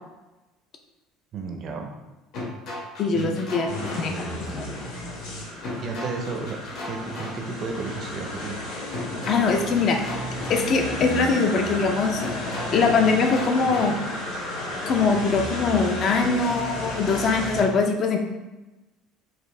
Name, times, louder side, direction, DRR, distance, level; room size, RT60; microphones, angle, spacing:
voice 1, 1.3-1.9 3.1-3.4 5.8-6.6 6.8-8.6, right 4 dB, 35° right, 3 dB, 0.5 m, -32 dB
sound 1, 2.3-4.0 5.6-7.3 8.9-10.6 12.2-13.9, left 1 dB, 50° left, 1.1 m, -36 dB
voice 2, 3.0-3.7 4.0-4.8 9.3-10.0 10.5-14.0 14.9-18.2, left 4 dB, 35° left, 4 dB, 0.4 m, -22 dB
sound 2, 3.7-17.6, left 1 dB, 75° left, 1.2 m, -33 dB
4.4 x 2.6 x 3.2 m, 1.1 s
cardioid pair, 170°, 0 cm